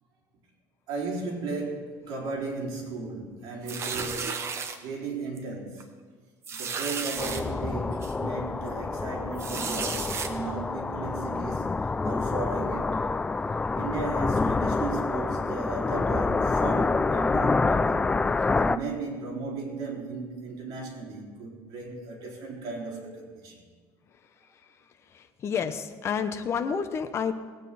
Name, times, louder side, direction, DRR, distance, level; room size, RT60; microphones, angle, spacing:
voice 1, 0.9-4.5 4.8-5.9 6.5-11.7 12.0-13.1 13.7-18.2 18.5-23.6, right 3 dB, 60° right, -2 dB, 3.7 m, -35 dB
sound 1, 3.7-4.8 5.4-5.5 5.8-5.9 6.4-7.4 8.0-8.1 9.4-10.3, right 6 dB, 35° right, 1.0 m, -33 dB
sound 2, 7.2-18.8, left 3 dB, 15° left, 0.3 m, -27 dB
voice 2, 25.1-27.3, left 6 dB, 35° left, 7 dB, 0.8 m, -29 dB
18.5 x 9.0 x 4.2 m, 1.6 s
cardioid pair, 140°, 8 cm